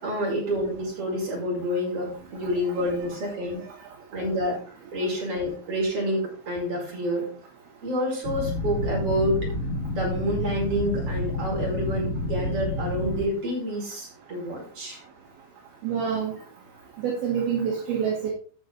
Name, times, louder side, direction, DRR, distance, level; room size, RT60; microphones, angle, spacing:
voice 1, 0.0-3.7 4.1-4.6 4.9-7.3 7.8-9.5 9.9-15.0, equal, 35° right, -3 dB, 5.5 m, -28 dB
sound 1, 8.3-13.2, left 1 dB, 65° left, 4.2 m, -29 dB
voice 2, 15.8-16.3 17.0-18.3, right 7 dB, 65° right, 0 dB, 3.1 m, -26 dB
15.5 x 6.0 x 3.8 m, 0.42 s
omnidirectional pair, 5.2 m